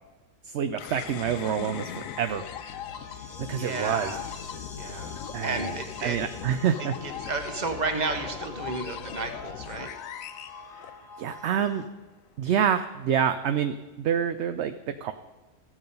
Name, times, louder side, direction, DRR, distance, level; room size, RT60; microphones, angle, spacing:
voice 1, 0.5-2.4 3.4-4.2 5.3-5.7 6.0-6.9 11.2-11.9 12.4-15.1, right 8 dB, 65° right, 9 dB, 0.8 m, -27 dB
sound 1, 0.8-11.4, left 10 dB, 80° left, 1.0 m, -40 dB
sound 2, 1.4-11.9, left 2 dB, 20° left, 0.8 m, -45 dB
voice 2, 3.1-4.3 4.7-5.1 5.4-6.2 6.8-9.9, right 3 dB, 35° right, 6 dB, 1.2 m, -32 dB
15.0 x 7.3 x 5.4 m, 1.2 s
omnidirectional pair, 1.4 m